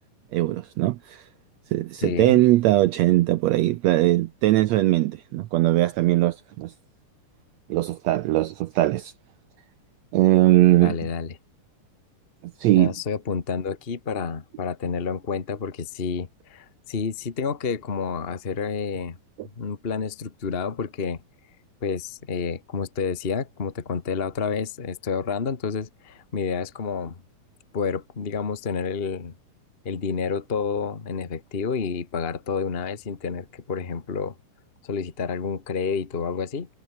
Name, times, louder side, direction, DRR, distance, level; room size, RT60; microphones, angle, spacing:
voice 1, 0.3-1.2 1.7-6.7 7.7-9.1 10.1-11.0 12.6-12.9 19.4-19.5, right 16 dB, 80° right, 1.5 m, -20 dB
voice 2, 2.0-2.4 10.7-11.3 12.7-19.2 19.6-21.2 21.8-27.2 27.7-29.3 29.8-34.3 34.8-36.7, left 5 dB, 50° left, 0.6 m, -29 dB
omnidirectional pair, 3.8 m